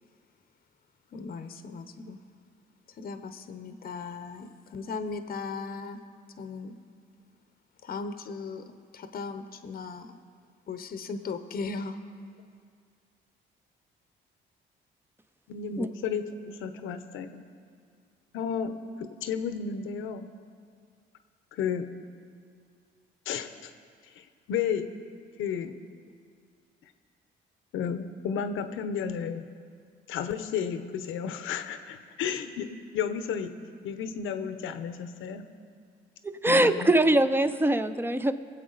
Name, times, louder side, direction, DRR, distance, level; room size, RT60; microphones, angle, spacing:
voice 1, 1.1-2.2 2.9-6.0 6.4-6.8 7.8-10.2 10.7-12.0, left 4 dB, 45° left, 9 dB, 0.7 m, -37 dB
voice 2, 15.5-17.4 18.3-20.3 21.5-21.9 23.3-23.7 24.2-24.9 25.4-25.8 27.7-29.4 30.1-32.7 32.9-33.5 33.8-35.4 36.5-36.9, left 7 dB, 85° left, 9 dB, 0.8 m, -32 dB
voice 3, 36.2-38.3, right 1 dB, 10° right, 11 dB, 0.6 m, -23 dB
22.0 x 7.9 x 3.9 m, 2.2 s
cardioid pair, 90°, 20 cm